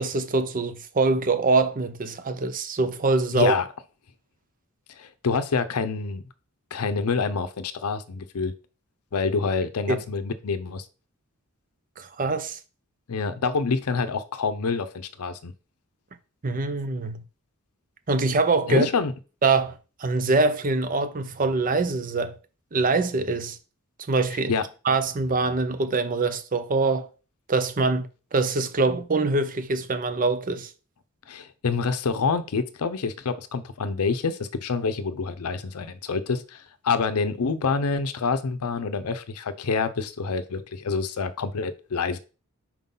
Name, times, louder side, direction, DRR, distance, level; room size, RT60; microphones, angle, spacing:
voice 1, 0.0-3.6 9.9-10.0 12.0-12.6 16.4-17.2 18.1-18.9 19.4-22.4 22.7-23.6 24.1-24.5 24.8-27.1 27.5-30.7, right 3 dB, 40° right, 0.6 m, -24 dB
voice 2, 3.3-3.7 5.0-6.2 6.7-8.5 9.1-10.9 13.1-15.5 18.7-19.1 24.5-24.7 31.3-42.2, left 4 dB, 85° left, 0.6 m, -27 dB
4.6 x 3.8 x 5.4 m
head